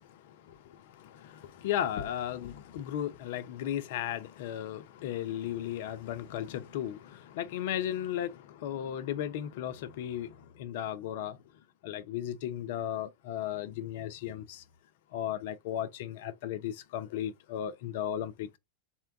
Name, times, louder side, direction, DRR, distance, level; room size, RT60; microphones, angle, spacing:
voice 1, 1.0-10.3 10.6-11.4 11.8-14.6 15.1-18.6, left 11 dB, 60° left, 0.5 m, -35 dB
4.3 x 2.2 x 3.7 m
hypercardioid pair, 100°, 0 cm